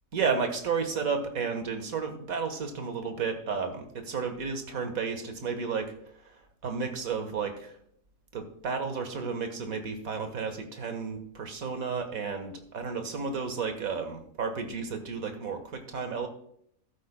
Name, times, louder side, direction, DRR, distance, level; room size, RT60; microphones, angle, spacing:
voice 1, 0.1-5.9 6.2-7.7 8.3-16.3, right 5 dB, 75° right, 7 dB, 1.8 m, -32 dB
14.5 x 12.5 x 2.2 m, 0.67 s
omnidirectional pair, 1.5 m